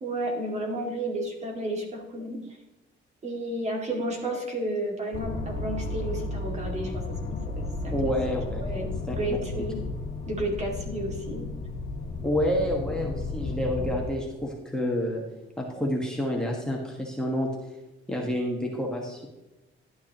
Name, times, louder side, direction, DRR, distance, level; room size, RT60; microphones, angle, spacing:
voice 1, 0.0-2.6 3.2-8.1 8.6-9.8 10.3-11.4, right 1 dB, 35° right, 1 dB, 2.2 m, -32 dB
sound 1, 5.1-14.0, left 3 dB, 45° left, 1.8 m, -33 dB
voice 2, 7.9-8.7 9.1-9.2 12.2-15.2 15.6-17.5 18.1-19.3, equal, 5° left, -2 dB, 1.4 m, -28 dB
12.0 x 9.4 x 3.0 m, 1.0 s
cardioid pair, 150°, 20 cm